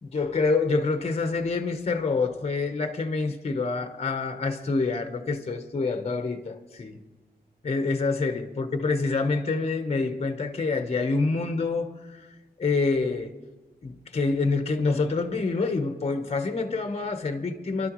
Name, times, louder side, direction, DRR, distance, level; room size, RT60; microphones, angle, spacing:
voice 1, 0.0-7.0 7.6-12.3 12.6-13.3 13.8-17.9, left 3 dB, 40° left, 1.0 m, -27 dB
27.5 x 12.0 x 3.1 m
wide cardioid pair, 115°, 16 cm